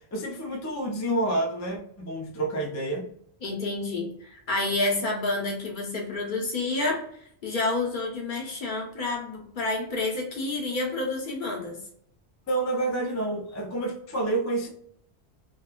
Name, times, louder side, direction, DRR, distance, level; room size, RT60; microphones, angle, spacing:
voice 1, 0.1-3.1 12.5-14.7, right 2 dB, 25° left, -1 dB, 0.3 m, -28 dB
voice 2, 3.4-11.8, left 2 dB, 50° left, 0 dB, 0.9 m, -29 dB
2.9 x 2.3 x 2.3 m, 0.65 s
omnidirectional pair, 1.1 m